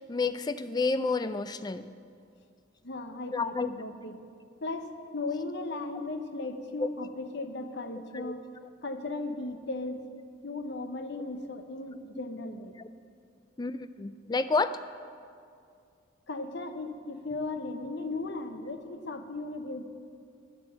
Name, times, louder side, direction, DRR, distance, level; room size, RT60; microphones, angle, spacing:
voice 1, 0.0-1.9 3.3-3.7 6.8-6.9 8.1-8.3 11.1-11.2 13.6-14.8, left 3 dB, 20° left, 12 dB, 0.3 m, -30 dB
voice 2, 2.8-4.2 4.6-8.5 8.8-10.1 10.4-12.7 16.3-19.8, left 2 dB, 55° left, 7 dB, 0.8 m, -36 dB
11.5 x 9.9 x 7.5 m, 2.3 s
head